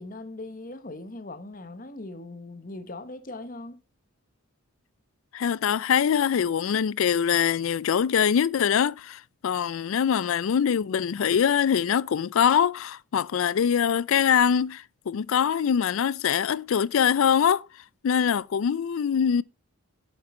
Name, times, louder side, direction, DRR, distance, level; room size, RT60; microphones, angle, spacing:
voice 1, 0.0-3.8, left 2 dB, 40° left, 1.1 m, -40 dB
voice 2, 5.3-17.6 18.0-19.4, left 8 dB, 70° left, 0.4 m, -23 dB
7.9 x 7.9 x 4.3 m
head